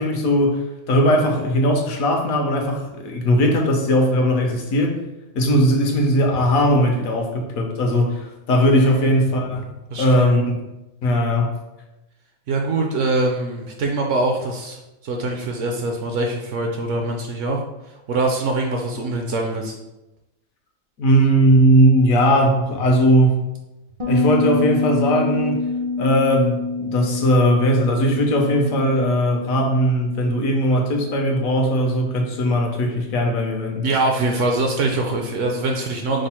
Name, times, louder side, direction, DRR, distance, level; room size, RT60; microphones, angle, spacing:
voice 1, 0.0-5.0 5.3-9.6 10.0-10.6 11.0-11.6 21.0-23.4 24.1-25.6 26.0-33.9, equal, 75° left, 2 dB, 1.2 m, -18 dB
voice 2, 8.8-9.1 9.9-10.3 12.5-14.8 15.0-17.6 18.1-19.7 33.8-36.3, right 2 dB, 70° right, 2 dB, 0.8 m, -23 dB
Bass guitar, 24.0-33.4, left 4 dB, 35° right, 0.5 m, -28 dB
5.0 x 2.0 x 4.2 m, 0.97 s
omnidirectional pair, 1.5 m